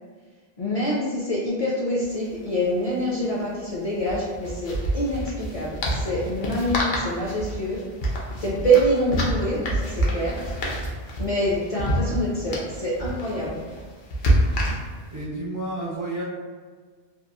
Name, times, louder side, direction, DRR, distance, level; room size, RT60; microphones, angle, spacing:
voice 1, 0.6-7.8 8.4-10.5 11.2-13.6, right 1 dB, 50° left, -6 dB, 0.4 m, -25 dB
sound 1, 2.0-2.1 2.3-2.5 4.0-15.2, right 1 dB, 70° left, 0.8 m, -27 dB
voice 2, 15.1-16.2, right 1 dB, 30° right, -7 dB, 0.3 m, -30 dB
2.9 x 2.3 x 2.2 m, 1.5 s
omnidirectional pair, 1.0 m